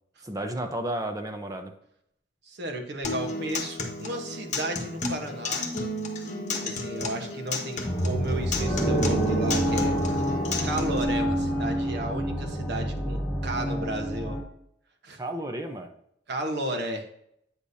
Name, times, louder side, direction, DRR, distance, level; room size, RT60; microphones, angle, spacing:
voice 1, 0.2-1.7 15.2-15.9, right 1 dB, 20° right, 5 dB, 0.7 m, -32 dB
voice 2, 2.5-5.7 6.6-10.0 10.6-14.4 15.0-15.2 16.3-17.0, right 1 dB, 65° right, 4 dB, 1.1 m, -33 dB
Acoustic guitar, 3.0-11.0, left 2 dB, 40° left, 1.2 m, -33 dB
sound 1, 7.8-14.4, equal, 20° left, 2.7 m, -27 dB
8.8 x 6.6 x 2.7 m, 0.73 s
head